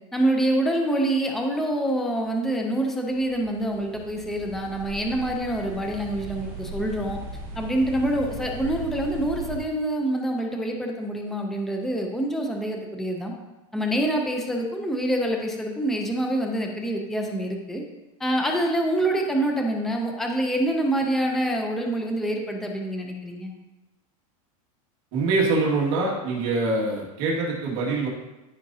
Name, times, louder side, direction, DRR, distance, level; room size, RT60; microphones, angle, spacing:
voice 1, 0.1-7.2 7.6-13.3 13.7-17.8 18.2-23.5, right 1 dB, ahead, 2 dB, 0.5 m, -26 dB
sound 1, 3.1-9.6, right 1 dB, 20° right, 2.6 m, -38 dB
voice 2, 25.1-28.1, right 3 dB, 45° right, -4 dB, 2.0 m, -24 dB
14.0 x 5.1 x 2.7 m, 1.1 s
supercardioid pair, 170°, 18 cm